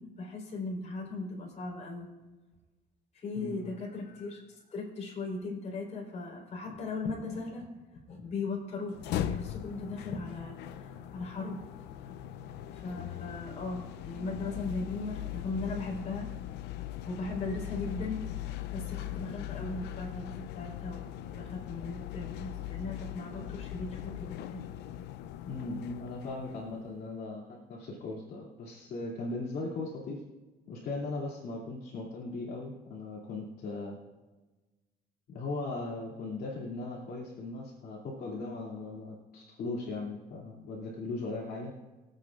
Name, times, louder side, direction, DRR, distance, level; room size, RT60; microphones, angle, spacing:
voice 1, 0.0-2.1 3.1-7.7 7.9-12.1 12.7-16.3 17.1-21.0 21.3-24.6, left 3 dB, 45° left, -2 dB, 4.1 m, -38 dB
voice 2, 3.4-3.7 25.4-30.2 30.7-34.0 35.3-41.7, left 3 dB, 60° left, -4 dB, 2.7 m, -38 dB
sound 1, 8.9-27.0, left 12 dB, 80° left, 0.6 m, -40 dB
24.0 x 8.4 x 2.5 m, 1.2 s
cardioid pair, 110°, 17 cm